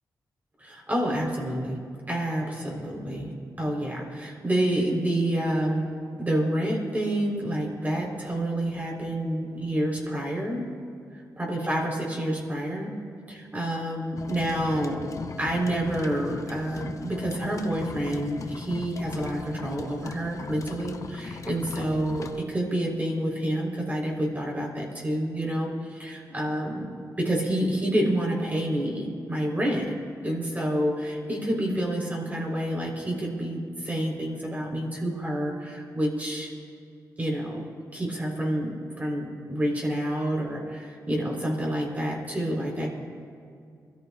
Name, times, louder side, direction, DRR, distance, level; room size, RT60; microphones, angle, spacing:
voice 1, 0.6-5.9 6.2-10.6 11.4-13.0 13.3-15.1 15.4-26.9 27.2-29.9 30.2-36.5 37.2-37.6 37.9-42.9, right 1 dB, 25° right, -2 dB, 3.7 m, -28 dB
sound 1, 14.2-22.4, left 4 dB, 50° left, 0.8 m, -38 dB
27.5 x 13.5 x 2.4 m, 2.4 s
cardioid pair, 80°, 7 cm